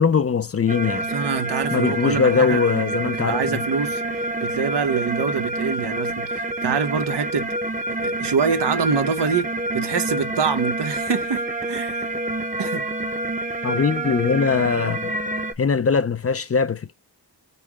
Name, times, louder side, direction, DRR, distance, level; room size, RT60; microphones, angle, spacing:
voice 1, 0.0-1.1 1.7-3.6 13.6-15.2 15.6-16.9, left 6 dB, 35° left, 0.4 m, -21 dB
sound 1, 0.7-15.5, right 2 dB, 20° right, 0.6 m, -27 dB
voice 2, 1.1-2.6 3.1-7.5 7.9-12.1 12.6-12.9, right 6 dB, 85° right, 0.7 m, -25 dB
5.4 x 2.1 x 4.6 m
wide cardioid pair, 65°, 40 cm